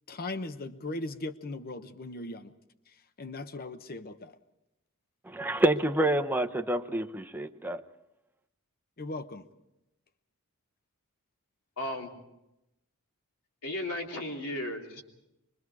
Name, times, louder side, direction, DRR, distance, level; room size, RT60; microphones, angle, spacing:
voice 1, 0.1-2.5 2.9-4.4 9.0-9.4, left 2 dB, 45° left, 11 dB, 0.9 m, -38 dB
voice 2, 5.3-7.8, right 1 dB, 10° right, 6 dB, 0.7 m, -28 dB
voice 3, 11.8-12.1 13.6-15.0, left 1 dB, 80° left, 1 dB, 3.2 m, -35 dB
25.5 x 22.5 x 4.8 m, 0.90 s
head